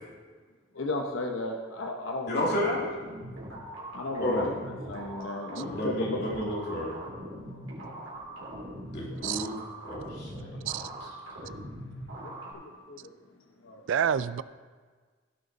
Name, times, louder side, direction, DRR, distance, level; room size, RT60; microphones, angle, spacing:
voice 1, 0.7-2.9 3.9-4.5 4.9-6.4 7.5-7.6 9.1-9.2 11.4-11.5 12.2-13.1 13.6-13.8, left 2 dB, 75° left, 2 dB, 0.9 m, -35 dB
voice 2, 2.3-2.8 4.2-4.5 5.5-7.0 8.9-9.5 9.8-10.6, left 1 dB, 55° left, -4 dB, 2.7 m, -31 dB
sound 1, 2.5-12.5, right 1 dB, 85° right, 3.4 m, -41 dB
voice 3, 13.9-14.4, right 8 dB, 65° right, 16 dB, 0.3 m, -28 dB
16.5 x 6.6 x 4.1 m, 1.5 s
head